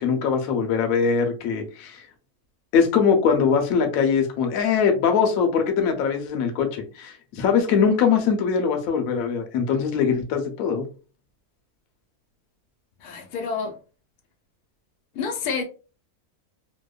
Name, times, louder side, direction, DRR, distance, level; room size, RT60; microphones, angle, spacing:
voice 1, 0.0-2.0 2.7-10.9, left 6 dB, 70° left, 1.0 m, -22 dB
voice 2, 13.0-13.8 15.1-15.6, left 5 dB, 90° left, 1.1 m, -28 dB
2.8 x 2.1 x 2.2 m
omnidirectional pair, 1.6 m